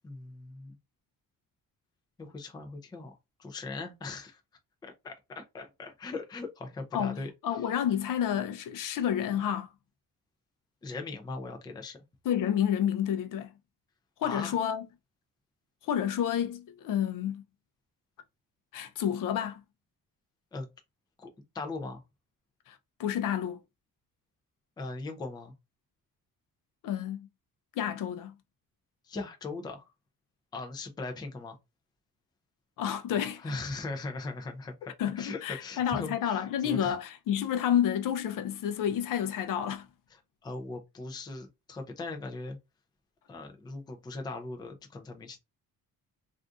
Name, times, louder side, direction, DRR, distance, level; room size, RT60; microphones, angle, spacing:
voice 1, 0.0-0.8 2.2-4.4 4.8-7.3 10.8-12.0 14.2-14.5 20.5-20.7 21.2-21.3 21.5-22.0 24.8-25.5 29.1-29.8 30.5-31.6 33.4-36.9 40.4-42.6 43.3-45.4, left 3 dB, 10° left, 0.4 m, -39 dB
voice 2, 6.9-9.7 12.2-13.5 14.2-14.8 15.8-17.4 18.7-19.6 22.7-23.6 26.8-27.3 27.8-28.3 32.8-33.4 35.0-39.9, left 9 dB, 65° left, 0.6 m, -30 dB
2.6 x 2.4 x 3.5 m
cardioid pair, 170°, 34 cm